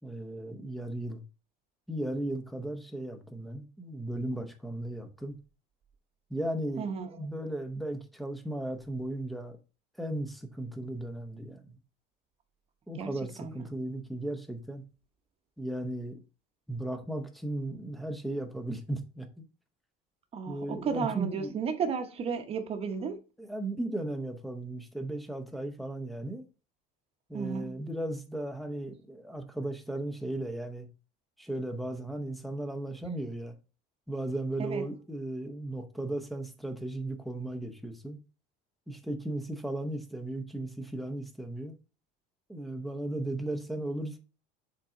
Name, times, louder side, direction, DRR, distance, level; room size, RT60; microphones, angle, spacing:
voice 1, 0.0-1.2 1.9-5.4 6.3-6.9 7.2-9.6 10.0-11.8 12.9-14.8 15.6-16.2 16.7-19.4 20.5-21.5 23.4-26.4 27.3-30.9 31.4-33.6 34.1-38.2 38.9-41.7 42.5-44.2, right 1 dB, ahead, 0.9 m, -36 dB
voice 2, 6.8-7.1 13.0-13.1 13.4-13.5 20.3-23.2 27.3-27.8 34.6-34.8, right 6 dB, 30° right, 1.0 m, -33 dB
7.3 x 3.8 x 3.8 m
cardioid pair, 145°, 18 cm